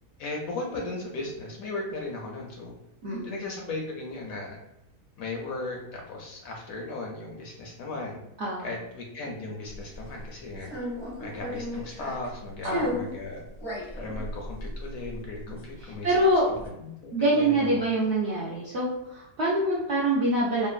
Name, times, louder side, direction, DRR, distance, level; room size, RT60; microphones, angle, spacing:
voice 1, 0.2-2.7 3.2-4.6 5.2-8.2 8.6-10.7 11.2-13.4 13.9-16.1 16.8-17.9, left 2 dB, 70° left, 0 dB, 0.9 m, -36 dB
voice 2, 3.0-3.3 8.4-8.7 12.6-12.9 15.8-16.5 17.1-20.7, right 1 dB, 65° right, -6 dB, 0.6 m, -25 dB
sound 1, 9.7-10.1 10.6-12.3 12.6-13.2 13.5-15.8 16.1-16.7, equal, 30° left, 0.5 m, -34 dB
3.0 x 2.1 x 2.4 m, 0.85 s
omnidirectional pair, 1.7 m